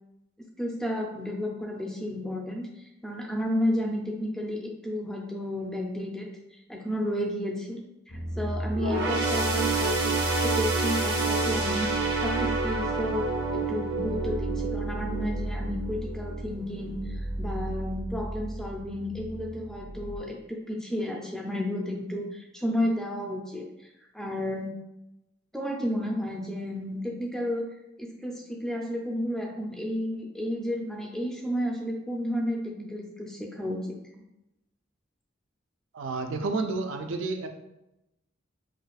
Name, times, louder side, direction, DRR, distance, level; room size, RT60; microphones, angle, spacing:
voice 1, 0.6-7.8 8.1-10.1 10.4-23.6 24.1-24.7 25.5-27.7 28.0-34.2, left 1 dB, 5° left, -1 dB, 0.4 m, -32 dB
sound 1, 8.1-20.2, right 1 dB, 70° left, 0.6 m, -34 dB
sound 2, 8.7-16.4 16.8-17.0 17.9-18.0, right 3 dB, 55° right, 0.9 m, -29 dB
voice 2, 35.9-37.5, right 3 dB, 75° right, 5 dB, 0.4 m, -30 dB
4.9 x 2.3 x 2.3 m, 0.90 s
head